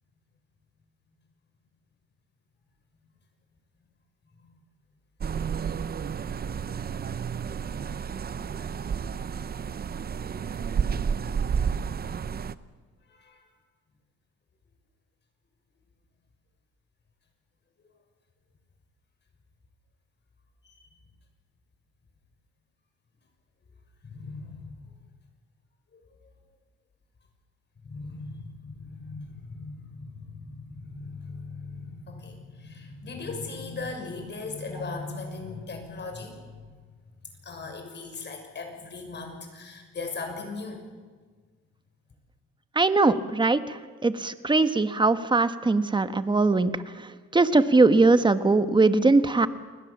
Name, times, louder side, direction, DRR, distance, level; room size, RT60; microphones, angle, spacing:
sound 1, 5.2-12.5, right 6 dB, 30° right, 0.7 m, -31 dB
voice 1, 13.1-13.5 20.6-20.8 24.0-24.9 25.9-26.0 27.8-36.6 37.4-40.8, left 3 dB, 35° left, 4 dB, 6.4 m, -38 dB
voice 2, 42.7-46.7 47.0-47.1 47.3-49.5, right 3 dB, 15° right, 11 dB, 1.2 m, -21 dB
29.5 x 20.5 x 7.3 m, 1.5 s
cardioid pair, 125°, 30 cm